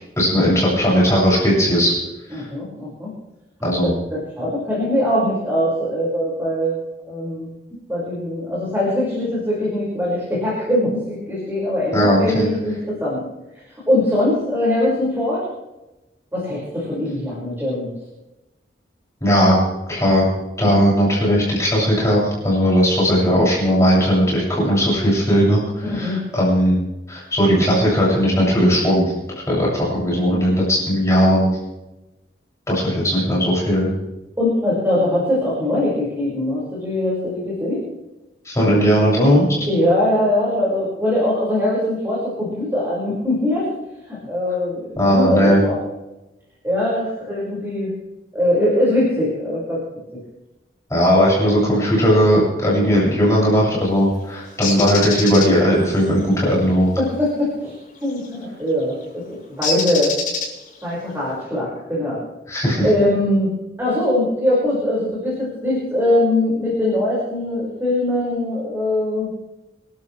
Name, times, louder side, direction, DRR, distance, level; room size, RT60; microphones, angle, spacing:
voice 1, 0.2-1.9 2.3-2.5 3.6-3.9 11.9-12.5 19.2-19.6 19.9-20.2 20.6-26.8 27.1-31.5 32.7-33.9 38.4-39.5 45.0-45.6 50.9-56.9 62.5-62.9, equal, 15° left, -6 dB, 7.5 m, -17 dB
voice 2, 2.3-3.1 4.1-6.8 7.1-7.5 7.9-13.2 13.9-15.5 16.3-17.9 25.8-26.2 34.4-37.8 38.7-38.8 39.7-43.7 44.1-45.8 46.6-47.9 48.3-49.8 57.0-57.7 58.0-60.2 60.8-62.2 62.8-63.5 63.8-69.3, left 1 dB, 15° right, -8 dB, 6.0 m, -21 dB
Bird, 54.6-55.5 58.1-58.3 59.6-60.8, left 4 dB, 45° left, 6.7 m, -24 dB
28.5 x 12.5 x 3.5 m, 1.0 s
head